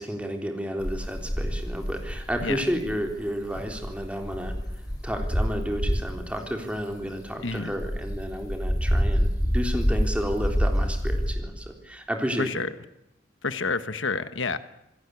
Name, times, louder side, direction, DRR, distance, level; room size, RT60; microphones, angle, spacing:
voice 1, 0.0-4.5 5.0-12.6, equal, 5° right, 4 dB, 3.7 m, -31 dB
sound 1, 0.8-6.3 6.8-11.3, equal, 20° left, 6.5 m, -27 dB
voice 2, 12.4-12.7 13.4-14.6, left 4 dB, 80° left, 12 dB, 1.3 m, -29 dB
27.5 x 17.5 x 8.4 m, 0.89 s
head